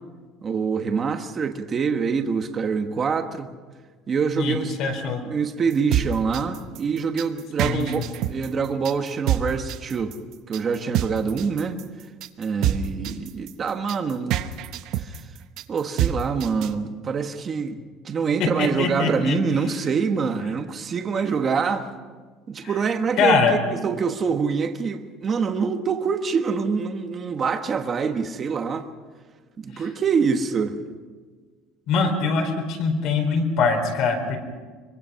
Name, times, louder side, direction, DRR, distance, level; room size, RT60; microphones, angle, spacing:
voice 1, 0.4-3.5 4.1-4.7 5.2-10.2 10.5-11.8 12.4-14.4 15.0-15.2 15.7-17.8 18.0-21.9 22.5-28.9 29.6-30.8, right 5 dB, 25° right, 6 dB, 1.3 m, -25 dB
voice 2, 4.4-5.2 7.6-8.1 18.4-19.4 22.6-22.7 23.2-23.6 29.7-29.8 31.9-34.4, left 4 dB, 50° left, 4 dB, 4.4 m, -23 dB
sound 1, 5.7-16.7, right 10 dB, 50° right, 1.0 m, -26 dB
24.5 x 23.5 x 5.8 m, 1.5 s
cardioid pair, 180°, 0 cm